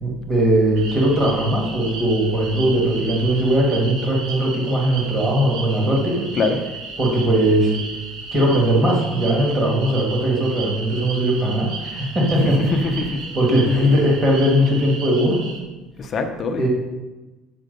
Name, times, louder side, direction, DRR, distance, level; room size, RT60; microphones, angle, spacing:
voice 1, 0.0-6.3 7.0-7.7 8.3-12.8 13.3-15.4 16.6-16.7, right 1 dB, 20° right, -3 dB, 1.6 m, -19 dB
sound 1, 0.8-15.6, right 3 dB, 60° right, 1.4 m, -34 dB
voice 2, 12.4-13.3 13.7-13.8 16.0-16.7, left 3 dB, 30° left, 6 dB, 0.6 m, -23 dB
7.5 x 4.2 x 5.2 m, 1.2 s
cardioid pair, 170°, 0 cm